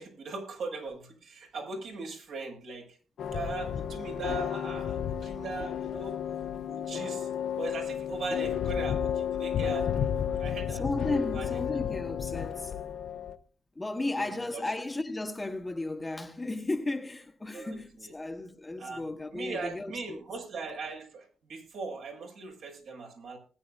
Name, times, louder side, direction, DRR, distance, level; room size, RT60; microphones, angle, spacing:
voice 1, 0.0-3.0 3.3-6.2 6.6-7.3 7.6-10.0 10.4-10.8 11.3-11.5 14.1-14.6 17.5-18.1 18.8-19.0 19.3-23.4, right 4 dB, 70° right, 6.6 m, -39 dB
sound 1, 3.2-13.4, left 8 dB, 60° left, 1.0 m, -32 dB
voice 2, 10.7-12.8 13.7-20.2, left 2 dB, 15° left, 1.3 m, -34 dB
20.0 x 9.6 x 2.6 m
cardioid pair, 90°, 0 cm